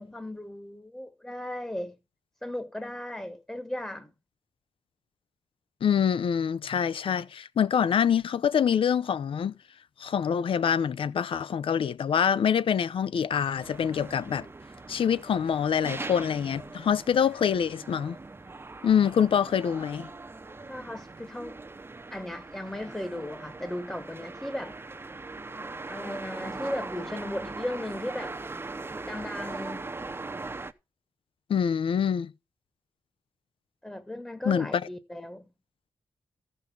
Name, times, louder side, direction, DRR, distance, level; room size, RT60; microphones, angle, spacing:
voice 1, 0.0-2.0 2.4-4.1 20.7-21.6 22.1-24.8 25.5-28.4 29.1-29.9 33.8-35.5, left 1 dB, 10° left, 1.2 m, -36 dB
voice 2, 5.8-9.5 10.0-14.5 14.9-18.2 18.8-20.1 31.5-32.3 34.5-34.7, left 8 dB, 70° left, 0.6 m, -25 dB
sound 1, 13.6-30.7, right 3 dB, 25° right, 0.8 m, -40 dB
14.0 x 5.5 x 5.8 m
cardioid pair, 70°, 10 cm